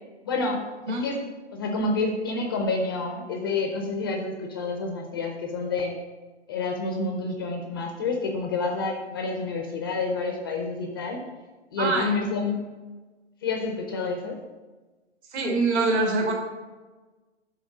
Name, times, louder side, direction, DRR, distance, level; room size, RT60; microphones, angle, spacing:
voice 1, 0.2-0.6 0.9-5.9 6.5-11.2 11.7-12.6 13.4-14.4, left 3 dB, 20° left, 2 dB, 0.3 m, -28 dB
voice 2, 11.8-12.1 15.3-16.3, right 3 dB, 70° right, 0 dB, 2.1 m, -24 dB
6.4 x 3.9 x 6.3 m, 1.3 s
hypercardioid pair, 140°, 35 cm